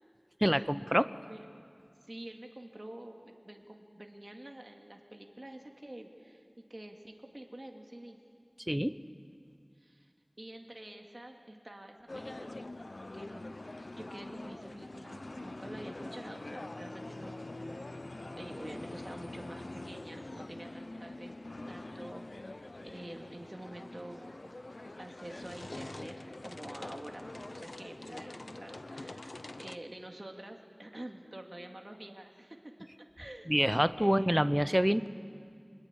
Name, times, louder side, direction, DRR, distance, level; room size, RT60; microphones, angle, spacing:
voice 1, 0.4-1.1 8.7-8.9 33.5-35.1, equal, 10° right, 14 dB, 0.8 m, -27 dB
voice 2, 2.1-6.4 6.7-8.2 9.8-10.1 10.4-12.5 13.1-17.5 17.9-21.3 21.7-22.7 22.9-24.3 25.0-26.2 26.4-32.6 33.2-33.5 34.0-34.4, right 1 dB, 50° right, 2 dB, 2.3 m, -48 dB
sound 1, 12.1-29.8, left 2 dB, 85° left, 0.6 m, -45 dB
26.5 x 21.0 x 9.0 m, 2.3 s
wide cardioid pair, 40°, 0 cm